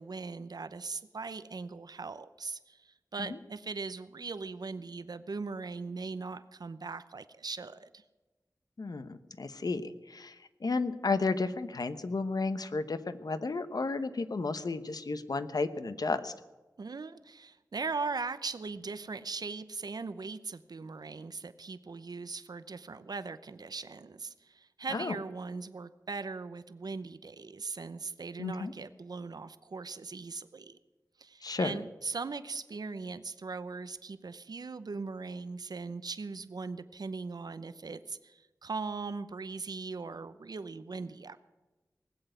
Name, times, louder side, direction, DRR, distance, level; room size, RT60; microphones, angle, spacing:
voice 1, 0.0-8.0 16.8-30.8 31.2-41.4, right 4 dB, 75° right, 13 dB, 0.7 m, -39 dB
voice 2, 8.8-10.3 10.6-16.3 24.9-25.1 28.4-28.7 31.4-31.7, left 3 dB, 70° left, 12 dB, 1.0 m, -32 dB
19.0 x 8.0 x 9.1 m, 1.2 s
wide cardioid pair, 50°, 7 cm